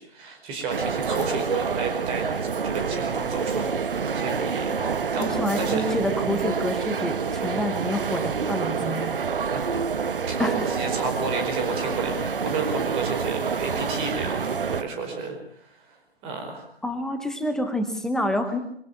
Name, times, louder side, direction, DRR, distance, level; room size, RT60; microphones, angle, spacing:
voice 1, 0.0-5.8 10.3-15.4 16.2-16.7, right 4 dB, 20° right, 4 dB, 4.9 m, -31 dB
sound 1, 0.7-14.8, right 5 dB, 60° right, 1.5 m, -27 dB
voice 2, 5.2-9.1 10.4-10.5 16.8-18.6, left 1 dB, ahead, 8 dB, 0.8 m, -27 dB
23.5 x 17.5 x 7.0 m, 0.65 s
figure-of-eight pair, 140°, 31 cm